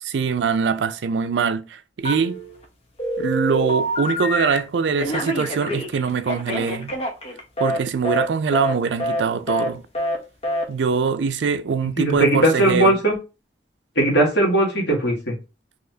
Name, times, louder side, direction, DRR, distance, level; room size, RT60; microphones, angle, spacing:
voice 1, 0.0-2.4 3.2-7.0 7.6-9.9 10.7-13.0, right 5 dB, 85° right, 0.4 m, -23 dB
Telephone, 2.0-2.6 3.0-4.6 5.0-7.8 8.0-8.3 8.5-8.7 9.0-9.2 9.5-9.7 9.9-10.2 10.4-10.6, equal, 35° left, 0.8 m, -26 dB
voice 2, 12.0-13.2 13.9-15.4, right 1 dB, 80° left, 1.6 m, -18 dB
4.0 x 2.8 x 2.7 m
head